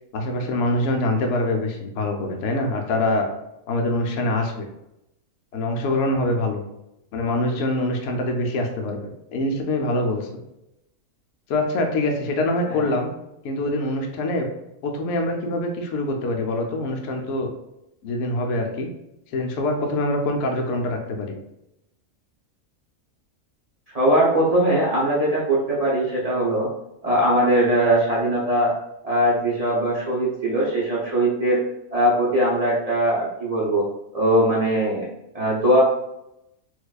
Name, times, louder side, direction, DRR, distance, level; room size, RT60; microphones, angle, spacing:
voice 1, 0.1-3.3 3.7-4.7 5.5-6.6 7.1-10.3 11.5-13.1 13.4-14.5 14.8-17.5 18.0-18.9 19.3-21.4, left 1 dB, 65° left, 2 dB, 0.8 m, -24 dB
voice 2, 23.9-26.7 27.0-28.7 29.0-31.6 31.9-33.8 34.1-35.1 35.3-35.8, right 1 dB, 40° right, -5 dB, 0.6 m, -20 dB
4.4 x 2.3 x 2.3 m, 0.86 s
omnidirectional pair, 1.5 m